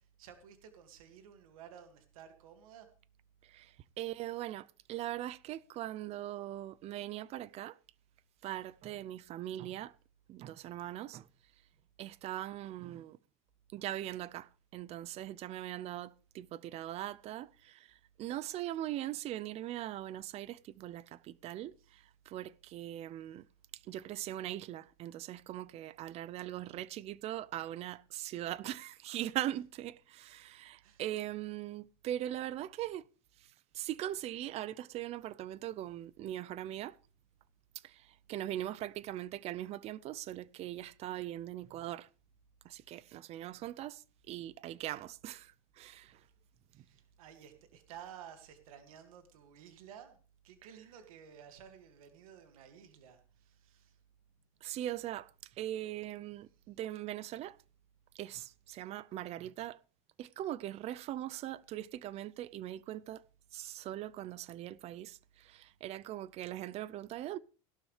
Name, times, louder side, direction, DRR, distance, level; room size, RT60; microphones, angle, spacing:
voice 1, 0.0-2.9 21.8-21.9 30.8-31.0 46.7-54.0, right 8 dB, 90° right, 2.1 m, -54 dB
voice 2, 3.5-7.8 8.4-9.9 10.3-11.3 12.0-13.2 13.7-23.5 23.9-33.1 33.7-37.0 37.8-42.1 42.6-46.2 46.8-46.9 54.6-55.3 55.6-57.6 58.1-59.8 60.2-63.2 63.5-67.4, right 13 dB, 35° right, 0.5 m, -41 dB
16.0 x 12.0 x 3.3 m
supercardioid pair, 135°, 18 cm